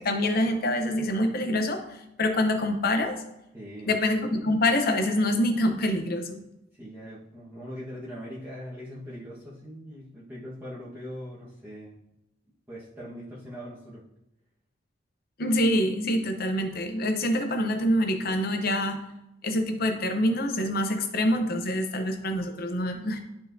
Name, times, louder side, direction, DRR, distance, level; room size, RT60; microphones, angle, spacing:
voice 1, 0.0-3.2 3.8-6.4 15.4-19.0 19.4-23.2, left 1 dB, 50° left, 5 dB, 0.7 m, -26 dB
voice 2, 3.5-3.9 6.7-12.0 12.7-14.0, equal, 10° right, -9 dB, 1.3 m, -41 dB
11.5 x 4.3 x 2.7 m, 0.87 s
head